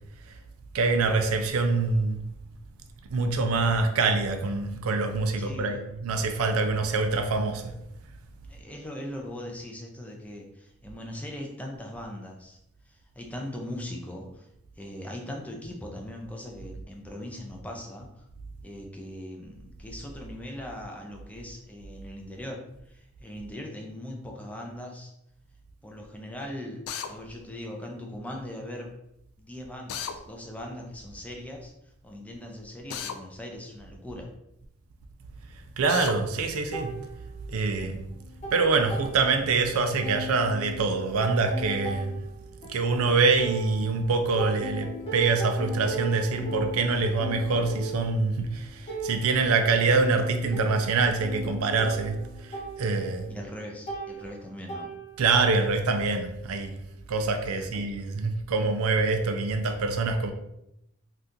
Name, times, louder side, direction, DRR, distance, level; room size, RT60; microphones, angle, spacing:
voice 1, 0.7-2.2 3.1-7.7 35.8-36.9 37.5-38.0 38.5-42.1 42.7-53.3 55.2-56.8 57.1-60.3, right 3 dB, 85° right, 0.4 m, -25 dB
voice 2, 5.4-5.8 8.5-12.6 12.9-14.5 14.8-18.2 18.6-25.1 25.8-28.9 29.4-31.7 32.0-34.3 53.3-54.9 57.5-57.7, left 1 dB, 5° left, 0.4 m, -40 dB
Drill, 26.9-27.1 29.9-30.2 32.9-33.2 35.9-36.2, left 8 dB, 85° left, 0.3 m, -34 dB
sound 1, 36.7-37.8 38.1-39.7 40.0-44.0 44.4-55.4, right 1 dB, 30° left, 0.8 m, -38 dB
2.8 x 2.4 x 3.5 m
head